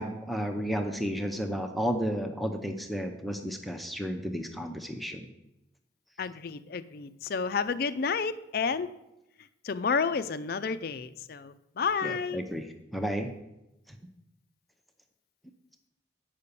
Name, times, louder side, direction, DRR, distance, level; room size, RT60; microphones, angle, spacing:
voice 1, 0.0-5.3 12.0-13.3, equal, ahead, 4 dB, 0.6 m, -32 dB
voice 2, 6.2-8.9 9.6-12.4, left 5 dB, 50° left, 12 dB, 0.4 m, -30 dB
8.3 x 5.7 x 6.8 m, 0.91 s
head